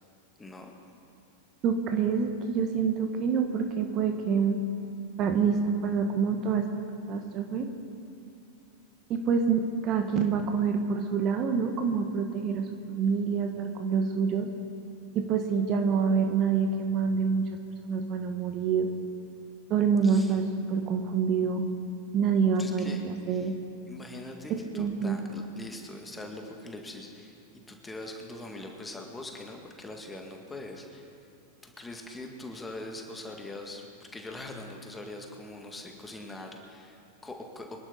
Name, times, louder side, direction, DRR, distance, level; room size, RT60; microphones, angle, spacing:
voice 1, 0.4-0.7 20.0-20.4 22.6-23.0 23.3-23.5 23.9-31.2 31.6-37.8, left 2 dB, 10° left, 2 dB, 2.0 m, -42 dB
voice 2, 1.6-4.6 5.2-6.6 7.1-7.7 9.1-14.5 15.1-17.4 17.8-18.9 19.7-21.6 22.1-23.5 24.7-25.2, right 6 dB, 35° right, 5 dB, 1.3 m, -26 dB
25.5 x 11.5 x 4.0 m, 2.7 s
figure-of-eight pair, 90°, 0 cm